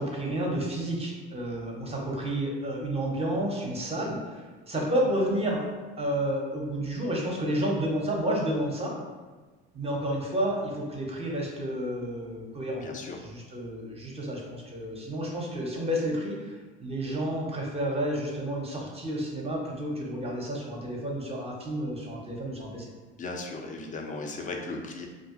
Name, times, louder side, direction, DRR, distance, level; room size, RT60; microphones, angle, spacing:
voice 1, 0.0-5.7 6.0-8.9 9.7-12.9 13.2-16.5 16.8-22.9, right 1 dB, 20° right, -2 dB, 0.7 m, -30 dB
voice 2, 12.8-13.2 23.2-25.1, left 3 dB, 25° left, 2 dB, 0.4 m, -36 dB
2.7 x 2.4 x 2.4 m, 1.3 s
hypercardioid pair, 60°, 34 cm